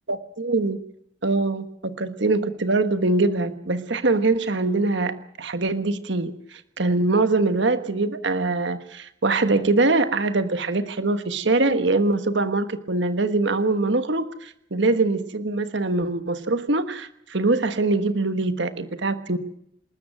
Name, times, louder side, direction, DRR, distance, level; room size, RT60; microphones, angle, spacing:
voice 1, 0.1-0.8 1.2-19.4, right 3 dB, 65° right, 10 dB, 1.3 m, -23 dB
27.0 x 13.0 x 9.0 m, 0.76 s
head